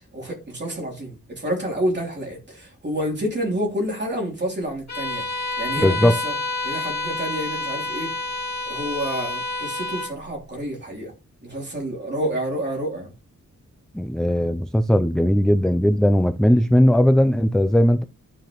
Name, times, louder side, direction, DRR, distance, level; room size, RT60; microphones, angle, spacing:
voice 1, 0.1-6.3 6.6-8.1 8.6-11.1 11.4-13.1, right 1 dB, 35° right, 3.1 m, -29 dB
Bowed string instrument, 4.9-10.2, left 2 dB, 60° left, 2.5 m, -28 dB
voice 2, 5.8-6.2 13.9-18.0, equal, ahead, 0.3 m, -18 dB
11.5 x 5.0 x 3.0 m
wide cardioid pair, 160°, 31 cm